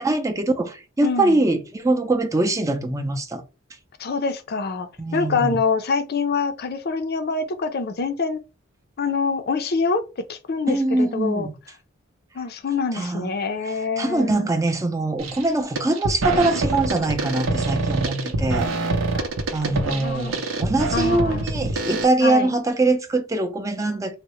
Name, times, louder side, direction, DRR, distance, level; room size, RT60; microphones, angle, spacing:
voice 1, 0.0-3.4 5.0-5.6 10.7-11.5 12.9-13.3 13.6-18.9 19.5-24.1, right 2 dB, 15° right, 0.5 m, -23 dB
voice 2, 1.0-1.4 4.0-8.4 9.0-10.0 10.3-11.5 12.3-14.5 19.1-19.3 19.6-20.4 20.9-21.5 22.2-22.5, left 4 dB, 50° left, 0.5 m, -25 dB
sound 1, 15.2-15.5 15.8-22.0, right 2 dB, 80° right, 0.7 m, -25 dB
3.5 x 2.1 x 3.0 m
head